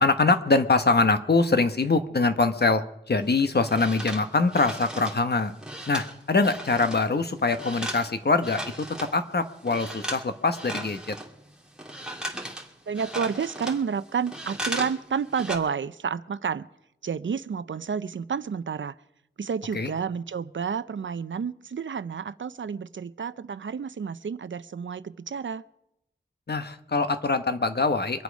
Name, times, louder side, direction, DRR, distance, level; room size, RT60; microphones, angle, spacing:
voice 1, 0.0-5.5 5.9-11.2 19.7-19.9 26.5-28.2, left 3 dB, 55° left, 9 dB, 1.1 m, -23 dB
sound 1, 3.2-9.2 9.6-10.3 10.5-15.0 15.2-15.6, right 1 dB, 5° right, 2.5 m, -36 dB
voice 2, 12.9-16.7 17.0-18.9 19.4-25.6, right 6 dB, 75° right, 15 dB, 0.6 m, -30 dB
24.5 x 8.2 x 5.2 m, 0.83 s
wide cardioid pair, 55°, 20 cm